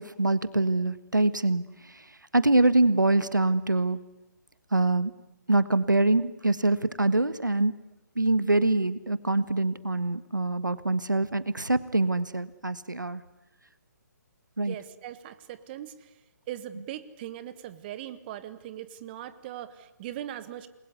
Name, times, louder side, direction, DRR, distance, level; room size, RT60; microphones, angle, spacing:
voice 1, 0.0-4.0 4.7-5.1 5.5-7.7 8.1-13.2 14.6-14.7, right 2 dB, 90° right, 15 dB, 1.5 m, -25 dB
voice 2, 14.7-16.1 16.5-20.7, right 12 dB, 30° right, 13 dB, 1.5 m, -40 dB
28.5 x 21.5 x 9.5 m, 0.98 s
figure-of-eight pair, 135°, 10 cm